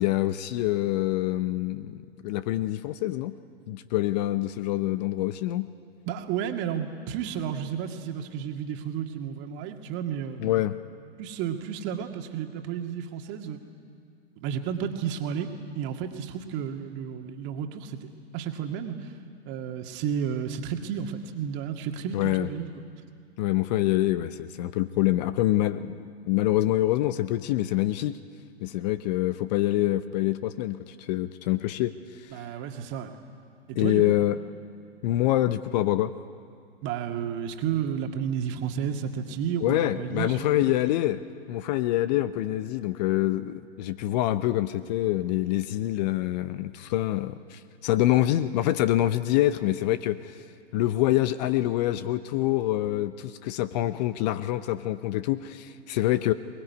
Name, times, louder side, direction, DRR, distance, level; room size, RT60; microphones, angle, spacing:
voice 1, 0.0-3.3 3.7-5.7 10.4-10.8 22.1-22.5 23.4-28.2 28.6-31.9 33.8-34.4 35.0-36.1 39.6-41.2 41.5-50.4 50.7-56.3, left 15 dB, 40° left, 13 dB, 0.8 m, -26 dB
voice 2, 6.1-10.6 11.2-13.6 14.4-15.5 15.7-18.1 18.3-19.1 19.5-22.7 32.3-33.1 33.7-34.0 36.8-40.8, right 8 dB, 35° right, 4 dB, 2.1 m, -32 dB
22.5 x 20.5 x 9.5 m, 2.3 s
figure-of-eight pair, 110°, 32 cm